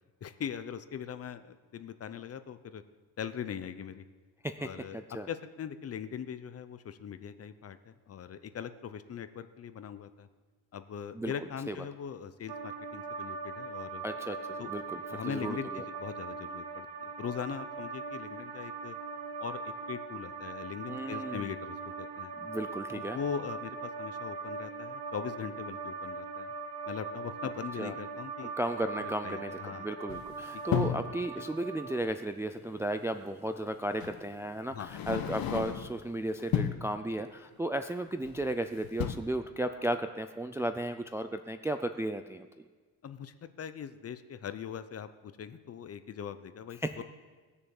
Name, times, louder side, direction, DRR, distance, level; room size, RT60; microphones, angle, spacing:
voice 1, 0.2-2.8 3.2-4.0 4.6-5.0 5.3-10.3 10.7-14.0 14.6-14.7 15.1-19.0 19.4-22.3 22.9-26.5 26.9-28.5 29.0-29.9 30.5-30.6 34.7-34.9 43.0-47.0, left 8 dB, 40° left, 11 dB, 0.7 m, -41 dB
voice 2, 4.4-5.3 11.1-11.3 11.7-11.8 14.0-14.4 14.7-15.8 20.9-21.5 22.4-23.2 27.8-27.9 28.4-42.5 46.8-47.0, right 1 dB, 5° right, 8 dB, 0.3 m, -35 dB
sound 1, 12.5-32.0, right 4 dB, 90° right, 1.3 m, -40 dB
sound 2, 30.1-31.1 32.8-32.9 34.0-34.2 34.8-36.0 36.4-36.9 38.2-38.6 38.8-39.1, left 9 dB, 65° left, 1.1 m, -33 dB
19.0 x 6.9 x 7.1 m, 1.4 s
cardioid pair, 140°, 38 cm